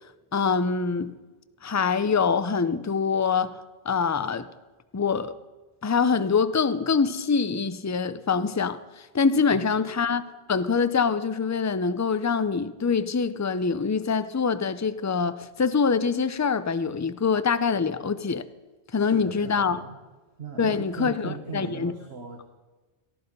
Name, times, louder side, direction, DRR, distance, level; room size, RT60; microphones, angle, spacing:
voice 1, 0.3-1.2 1.6-3.6 3.8-4.5 4.9-5.3 5.8-10.2 10.5-18.4 18.9-19.8 20.6-21.9, left 5 dB, 20° left, 0.4 m, -24 dB
voice 2, 19.0-20.0 20.4-22.4, right 5 dB, 70° right, 1.7 m, -38 dB
18.5 x 14.0 x 5.3 m
omnidirectional pair, 1.1 m